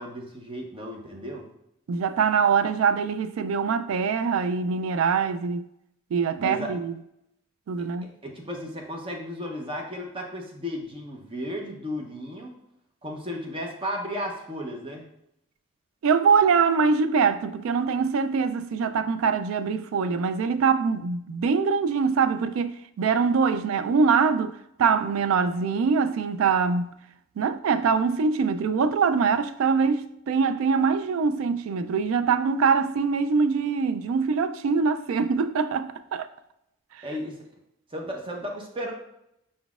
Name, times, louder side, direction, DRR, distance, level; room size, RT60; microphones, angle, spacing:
voice 1, 0.0-1.5 6.4-6.7 7.8-12.5 13.0-15.1 37.0-37.4 37.9-38.9, equal, 25° right, 0.7 m, -34 dB
voice 2, 1.9-5.7 6.1-6.9 7.7-8.1 16.0-26.9 27.4-36.3, right 5 dB, 75° right, 0.3 m, -23 dB
5.1 x 3.9 x 2.4 m
head